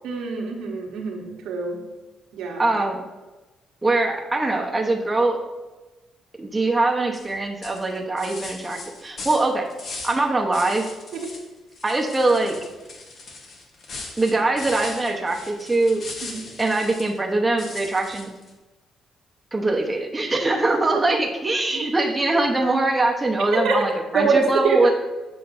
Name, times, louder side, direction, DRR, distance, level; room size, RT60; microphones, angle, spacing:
voice 1, 0.0-1.8 2.3-2.6 11.1-11.3 16.2-16.5 21.0-21.2 21.7-21.9 23.5-23.8 24.1-24.9, right 4 dB, 85° right, 0 dB, 1.1 m, -25 dB
voice 2, 2.6-3.0 3.8-5.4 6.4-9.7 10.0-10.9 11.8-12.6 14.2-16.0 16.6-18.3 19.5-24.9, right 2 dB, 15° right, 1 dB, 0.9 m, -22 dB
sound 1, 7.1-7.3 7.6-10.2 10.5-11.4 11.7-17.2 17.6-18.5, left 3 dB, 55° left, 1.2 m, -39 dB
7.5 x 5.8 x 2.6 m, 1.2 s
cardioid pair, 90°, 0 cm